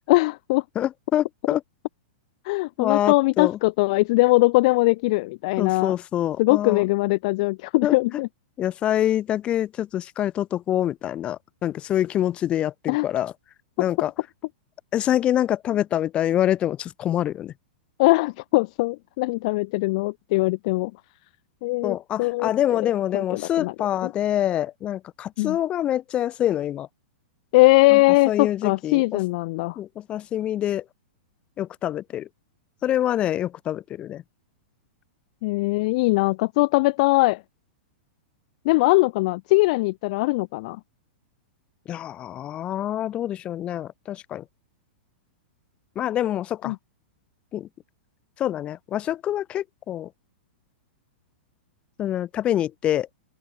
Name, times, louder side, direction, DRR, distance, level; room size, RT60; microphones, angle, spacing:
voice 1, 0.1-0.6 2.4-5.9 6.4-8.3 12.9-13.1 18.0-20.9 21.6-22.8 23.1-23.7 24.0-24.1 25.4-25.6 27.5-29.8 35.4-37.4 38.6-40.8 46.6-46.8, left 23 dB, 40° left, 1.2 m, -21 dB
voice 2, 0.8-1.6 2.8-3.6 5.6-6.8 7.8-8.0 8.6-13.3 13.8-14.1 14.9-17.5 21.8-26.9 27.9-28.0 28.3-29.2 29.8-30.8 31.6-32.3 32.8-34.2 41.9-44.4 46.0-46.7 47.5-47.7 48.4-50.1 52.0-53.1, left 11 dB, 20° left, 1.8 m, -25 dB
open air
supercardioid pair, 165°, 6 cm